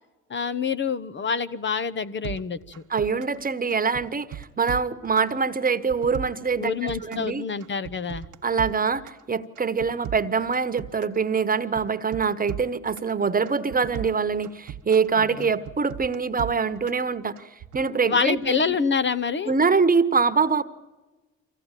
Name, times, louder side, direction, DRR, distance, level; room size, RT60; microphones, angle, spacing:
voice 1, 0.3-2.8 6.6-8.3 15.4-15.5 18.0-19.5, left 5 dB, 40° left, 13 dB, 0.9 m, -26 dB
sound 1, 2.2-3.4 3.7-5.3 5.6-7.3 7.6-9.2 9.5-11.2 11.5-13.1 13.5-15.1 15.4-17.0 17.4-17.8, right 11 dB, 80° right, 1.4 m, -38 dB
voice 2, 2.9-7.4 8.4-17.5 17.7-18.8 19.5-20.6, right 5 dB, 30° right, 11 dB, 1.3 m, -24 dB
24.5 x 16.5 x 9.1 m, 1.2 s
cardioid pair, 90°, 30 cm